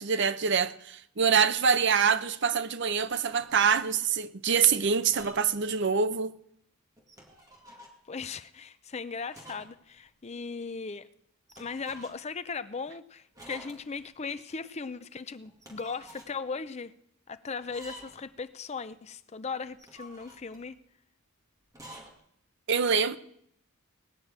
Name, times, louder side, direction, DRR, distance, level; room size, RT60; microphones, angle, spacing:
voice 1, 0.0-6.3 22.7-23.2, right 6 dB, 55° right, 0.7 m, -25 dB
sound 1, 2.9-3.7 4.9-5.6 5.9-6.0 7.0-8.0 9.3-9.8 10.1-10.2 11.5-12.3 13.4-14.1 15.5-16.3 17.6-18.3 19.7-20.7 21.7-22.1, right 1 dB, 15° right, 2.1 m, -50 dB
voice 2, 8.1-11.1 11.6-16.9 17.3-20.8, left 5 dB, 30° left, 0.5 m, -38 dB
18.5 x 6.3 x 8.8 m
head